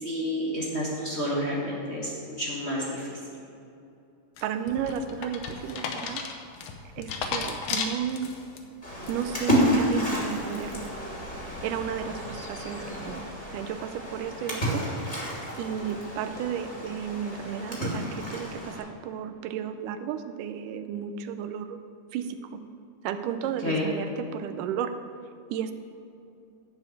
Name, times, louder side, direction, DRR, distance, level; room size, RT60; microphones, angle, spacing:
voice 1, 0.0-3.1 15.8-15.9 23.6-23.9, equal, 35° left, -6 dB, 1.0 m, -30 dB
sound 1, 4.4-8.6 9.0-9.5, left 5 dB, 75° left, 2.3 m, -34 dB
voice 2, 4.4-6.2 7.0-8.3 9.1-10.9 11.6-14.8 15.6-21.8 22.1-22.6 23.0-24.9 25.5-25.7, right 8 dB, 85° right, 8 dB, 2.2 m, -33 dB
Splash splatter, 8.8-18.8, equal, 15° left, 2.0 m, -31 dB
11.0 x 5.2 x 8.3 m, 2.6 s
omnidirectional pair, 3.7 m